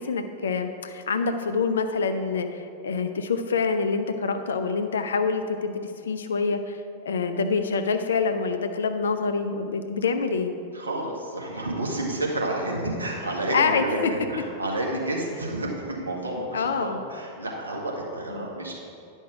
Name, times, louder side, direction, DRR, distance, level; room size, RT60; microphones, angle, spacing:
voice 1, 0.0-5.7 6.1-6.8 7.1-10.5 13.5-14.1 16.5-17.0 18.3-18.5, left 5 dB, 70° left, 8 dB, 0.6 m, -26 dB
voice 2, 10.7-14.0 14.3-18.9, right 1 dB, 80° right, -2 dB, 1.7 m, -30 dB
10.5 x 5.4 x 5.0 m, 2.6 s
figure-of-eight pair, 90°, 0 cm